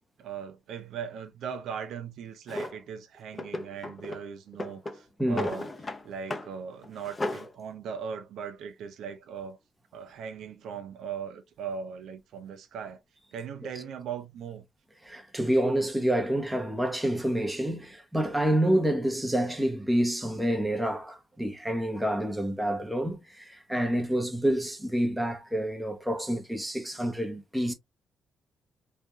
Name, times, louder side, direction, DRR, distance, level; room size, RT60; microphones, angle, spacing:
voice 1, 0.2-5.7 6.0-9.6 9.9-13.0 13.3-14.6, right 7 dB, 75° right, 0.7 m, -39 dB
Drawer open or close, 2.5-2.8 3.3-4.2 4.5-6.0 6.3-6.5 6.8-7.5, left 2 dB, 25° left, 0.6 m, -34 dB
voice 2, 15.0-27.7, right 1 dB, 5° right, 0.9 m, -28 dB
3.4 x 2.8 x 2.3 m
cardioid pair, 90°, 0 cm